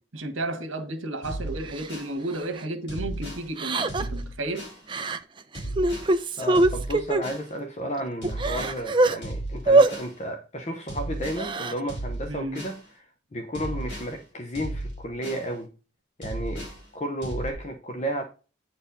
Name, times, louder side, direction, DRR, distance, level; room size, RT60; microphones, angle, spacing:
voice 1, 0.0-4.7 12.3-12.6, right 2 dB, 85° right, 1.5 m, -33 dB
sound 1, 1.2-2.1 2.9-3.5 3.9-4.8 5.5-6.1 6.5-7.5 8.2-8.8 9.2-10.1 10.9-11.5 11.9-12.8 13.5-14.1 14.5-15.5 16.2-16.8 17.2-17.5, right 1 dB, 55° left, 4.0 m, -35 dB
Crying sobbing, 1.8-1.9 2.4-2.6 3.6-4.2 4.9-5.2 5.5-7.2 7.8-7.9 8.2-9.2 9.7-9.9 11.2-11.8, right 2 dB, 25° right, 0.5 m, -22 dB
voice 2, 6.4-13.1 13.3-15.7 16.2-18.2, equal, 35° left, 0.8 m, -33 dB
8.7 x 4.4 x 5.2 m
head